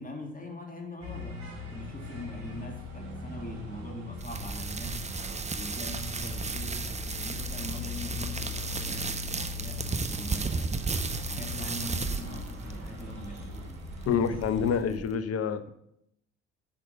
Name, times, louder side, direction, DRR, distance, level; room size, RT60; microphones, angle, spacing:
voice 1, 0.0-5.0 5.5-10.7 11.1-13.6, left 2 dB, 25° left, 2 dB, 2.9 m, -42 dB
sound 1, 1.0-14.8, left 3 dB, 50° right, 4.5 m, -40 dB
sound 2, 4.2-15.2, right 4 dB, 20° right, 1.1 m, -35 dB
voice 2, 14.1-15.7, left 7 dB, 45° left, 11 dB, 1.1 m, -27 dB
8.5 x 6.6 x 6.9 m, 0.77 s
figure-of-eight pair, 55°, 35 cm